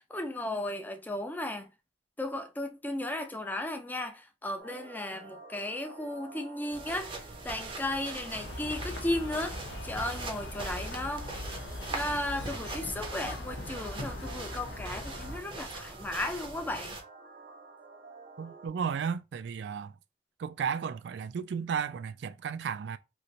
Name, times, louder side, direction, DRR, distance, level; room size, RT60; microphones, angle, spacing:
voice 1, 0.0-1.7 2.2-7.1 7.4-11.3 11.9-17.0, left 1 dB, 10° left, 0.5 m, -35 dB
sound 1, 4.6-18.7, right 4 dB, 65° right, 0.7 m, -50 dB
sound 2, 6.7-17.0, right 2 dB, 30° right, 0.7 m, -42 dB
sound 3, 8.3-15.4, left 2 dB, 80° left, 0.6 m, -41 dB
voice 2, 18.4-19.9 20.4-23.0, right 6 dB, 80° right, 0.3 m, -34 dB
3.1 x 2.5 x 2.7 m
head